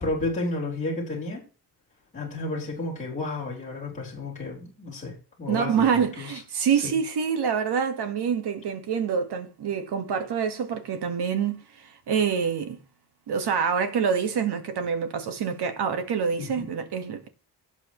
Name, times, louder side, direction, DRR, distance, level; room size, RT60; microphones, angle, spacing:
voice 1, 0.0-1.4 2.1-6.4 6.8-7.0 16.3-16.7, left 2 dB, 15° left, 4.1 m, -32 dB
voice 2, 5.5-12.8 13.3-17.3, right 7 dB, 70° right, 1.7 m, -26 dB
17.0 x 6.1 x 3.1 m
wide cardioid pair, 160°, 42 cm